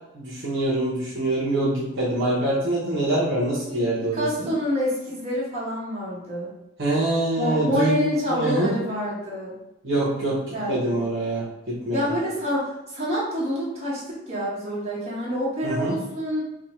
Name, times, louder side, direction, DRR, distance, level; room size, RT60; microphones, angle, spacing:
voice 1, 0.1-4.5 6.8-7.9 8.3-8.7 9.8-12.0 15.6-15.9, right 1 dB, 60° right, -6 dB, 1.0 m, -25 dB
voice 2, 4.1-6.5 7.4-9.6 10.5-11.1 11.9-16.4, equal, 30° right, -8 dB, 1.4 m, -27 dB
3.5 x 2.3 x 4.3 m, 0.93 s
head